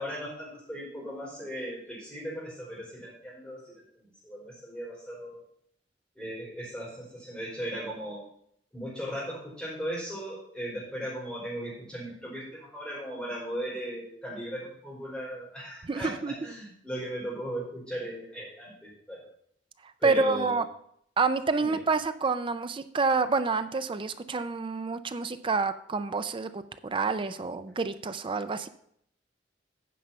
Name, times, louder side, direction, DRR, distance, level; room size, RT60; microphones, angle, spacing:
voice 1, 0.0-5.4 6.2-8.3 8.7-19.3 20.0-20.6 21.6-21.8, equal, 5° left, -7 dB, 4.1 m, -37 dB
voice 2, 15.9-16.3 20.0-20.6 21.2-28.7, right 4 dB, 30° right, 11 dB, 0.4 m, -28 dB
9.4 x 5.5 x 5.7 m, 0.69 s
head